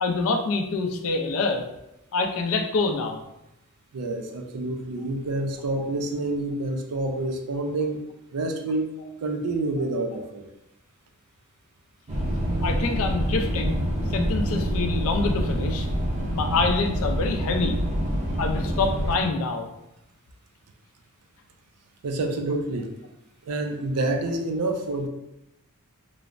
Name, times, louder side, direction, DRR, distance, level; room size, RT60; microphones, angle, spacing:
voice 1, 0.0-1.6 2.1-3.2 12.6-13.8 14.1-15.9 16.3-17.8 18.4-19.7, left 3 dB, 65° left, 5 dB, 0.4 m, -26 dB
voice 2, 3.9-8.0 8.3-8.9 9.2-10.5 22.0-22.9 23.5-25.1, right 2 dB, 90° right, 5 dB, 0.4 m, -28 dB
sound 1, 12.1-19.2, equal, 30° right, 0.5 m, -26 dB
3.1 x 2.0 x 2.4 m, 0.88 s
head